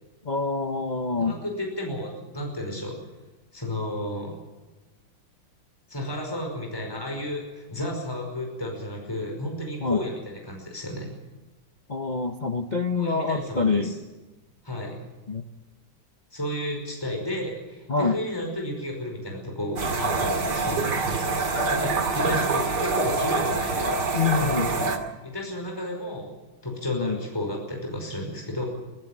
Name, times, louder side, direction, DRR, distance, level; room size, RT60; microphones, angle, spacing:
voice 1, 0.2-1.3 9.8-10.0 11.9-13.9 15.3-15.4 17.9-18.2 22.3-22.5 24.1-24.7 26.9-27.2, left 4 dB, 45° left, 6 dB, 0.5 m, -26 dB
voice 2, 1.2-3.0 3.5-4.4 5.9-11.1 12.9-14.0 14.6-15.0 16.3-24.8 25.2-26.3 26.6-28.6, left 1 dB, 10° left, 1 dB, 5.3 m, -33 dB
sound 1, 19.8-25.0, right 3 dB, 55° right, 2.7 m, -25 dB
24.5 x 15.5 x 7.5 m, 1.1 s
omnidirectional pair, 2.2 m